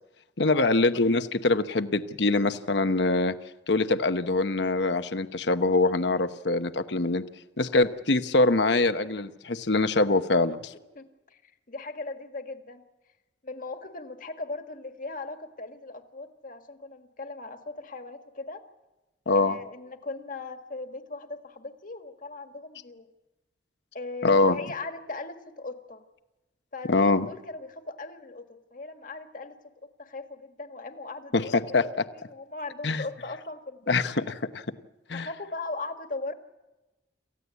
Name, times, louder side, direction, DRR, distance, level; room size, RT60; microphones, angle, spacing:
voice 1, 0.4-3.3 3.7-7.2 7.6-10.7 19.3-19.6 24.2-24.6 26.9-27.3 31.3-31.8 32.8-33.0 33.9-34.6 35.1-35.3, left 3 dB, 65° left, 10 dB, 1.0 m, -24 dB
voice 2, 10.7-12.8 13.4-18.6 19.3-23.1 23.9-26.0 26.7-28.4 28.7-29.6 30.0-34.0 35.1-36.3, left 3 dB, 45° left, 7 dB, 1.7 m, -39 dB
28.0 x 15.5 x 8.3 m, 1.1 s
head